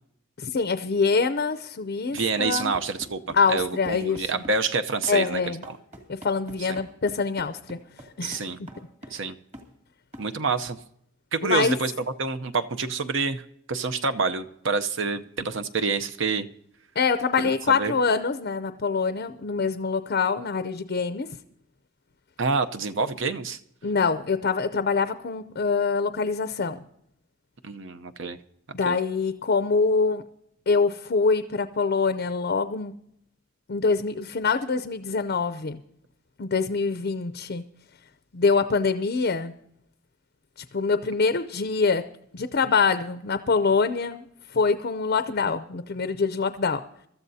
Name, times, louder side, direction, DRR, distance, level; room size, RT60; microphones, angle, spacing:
voice 1, 0.4-2.7 3.3-4.2 5.1-5.6 6.1-7.8 8.2-8.4 11.4-11.8 17.0-21.3 23.8-26.8 28.7-30.2 30.7-32.9 33.7-35.8 36.4-37.6 38.3-39.5 40.7-42.0 42.3-44.2 44.5-46.8, left 4 dB, 45° left, 11 dB, 0.5 m, -24 dB
voice 2, 2.1-5.8 6.6-6.8 8.2-8.6 9.1-9.4 10.2-10.8 11.3-16.5 17.4-17.9 22.4-23.6 27.6-28.4 28.8-29.0, right 4 dB, 60° right, 9 dB, 0.7 m, -27 dB
sound 1, 2.2-4.6 5.0-9.3 9.5-9.7 10.1-10.3, equal, 35° right, 2.3 m, -45 dB
24.0 x 13.5 x 2.7 m, 0.73 s
head